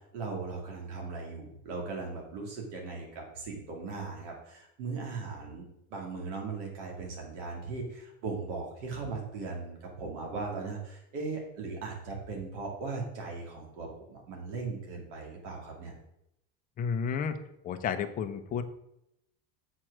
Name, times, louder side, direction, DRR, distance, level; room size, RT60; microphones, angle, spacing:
voice 1, 0.1-5.6 5.9-15.9, right 4 dB, 90° right, 0 dB, 2.4 m, -38 dB
voice 2, 16.8-17.4 17.6-18.6, left 7 dB, 25° left, 7 dB, 0.6 m, -31 dB
7.6 x 4.5 x 6.1 m, 0.81 s
cardioid pair, 160°, 35 cm